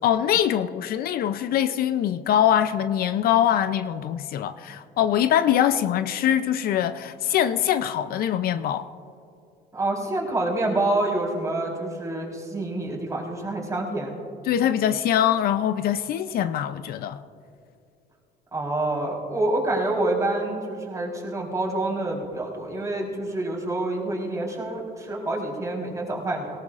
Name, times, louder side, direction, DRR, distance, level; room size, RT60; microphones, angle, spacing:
voice 1, 0.0-8.9 14.5-17.2, left 10 dB, 65° left, 0.5 m, -23 dB
voice 2, 9.7-14.1 18.5-26.6, right 2 dB, 20° right, 3.9 m, -27 dB
18.0 x 18.0 x 2.5 m
cardioid pair, 110°, 17 cm